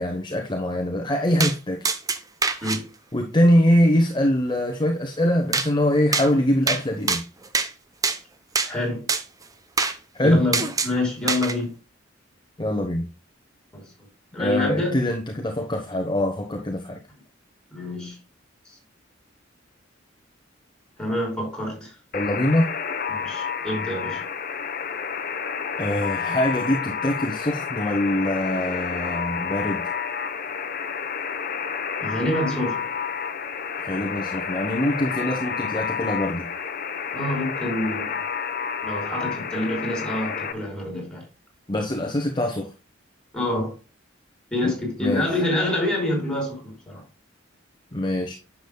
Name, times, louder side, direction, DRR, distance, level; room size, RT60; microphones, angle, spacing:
voice 1, 0.0-1.9 3.1-7.3 10.1-10.4 12.6-13.1 14.4-17.0 22.1-22.7 25.8-29.8 33.8-36.5 41.7-42.7 44.6-44.7 45.0-45.3 47.9-48.3, left 1 dB, 25° left, 1.1 m, -23 dB
sound 1, 1.4-1.6 1.9-2.8 5.5-5.7 6.1-6.3 6.7-6.8 7.1-7.7 8.0-8.2 8.6-8.7 9.1-9.2 9.8-10.0 10.5-10.9 11.3-11.6, right 4 dB, 20° right, 0.8 m, -24 dB
voice 2, 8.6-9.1 10.2-11.7 13.7-13.9 14.3-15.0 17.7-18.2 18.6-18.8 21.0-21.9 23.1-24.2 32.0-32.8 37.1-38.2 38.8-41.2 43.3-43.8 44.5-47.0, left 1 dB, 5° left, 5.0 m, -27 dB
Alarm, 22.1-40.5, left 6 dB, 50° left, 1.0 m, -30 dB
10.0 x 7.3 x 2.3 m
head